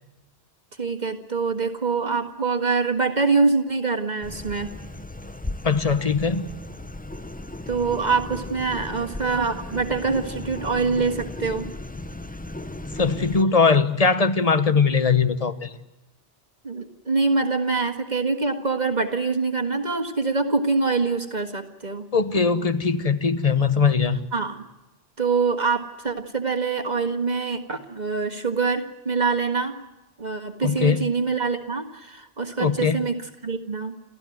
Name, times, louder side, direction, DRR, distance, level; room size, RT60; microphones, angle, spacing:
voice 1, 0.8-4.7 7.7-11.7 16.6-22.1 24.3-24.6 25.2-29.8 30.2-33.9, right 4 dB, 40° right, 6 dB, 1.8 m, -25 dB
sound 1, 4.2-13.4, left 1 dB, 10° left, 0.5 m, -36 dB
voice 2, 5.6-6.5 13.0-15.8 22.1-24.3 30.6-31.0 32.6-33.0, left 5 dB, 35° left, 12 dB, 1.2 m, -21 dB
29.0 x 15.0 x 9.3 m, 1.0 s
omnidirectional pair, 1.2 m